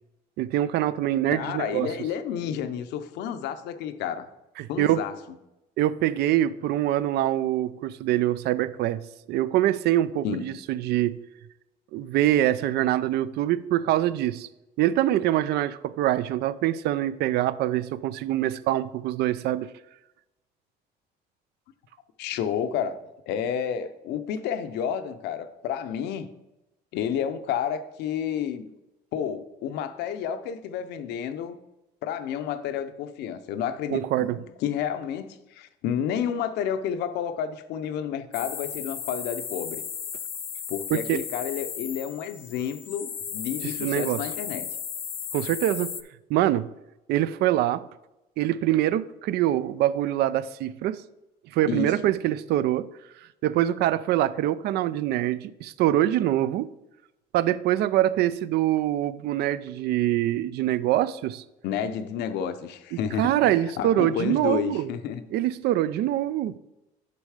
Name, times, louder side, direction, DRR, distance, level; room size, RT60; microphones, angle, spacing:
voice 1, 0.4-1.9 4.6-5.0 5.8-9.0 9.3-11.2 11.9-14.5 14.8-19.7 33.9-34.4 40.9-41.2 43.8-44.2 45.3-45.9 46.3-46.7 47.1-47.8 48.4-51.0 51.5-52.9 53.4-56.7 57.3-61.4 62.9-64.9 65.3-66.5, right 13 dB, 75° right, 0.4 m, -24 dB
voice 2, 1.3-4.3 4.7-5.1 10.2-10.6 22.2-23.0 23.3-26.3 26.9-28.7 29.1-31.6 32.0-34.3 34.6-39.8 40.7-44.7 51.7-52.1 61.6-65.2, left 8 dB, 85° left, 0.7 m, -30 dB
sound 1, 38.3-46.0, left 7 dB, 30° left, 0.5 m, -35 dB
6.8 x 5.4 x 4.8 m
cardioid pair, 110°, 17 cm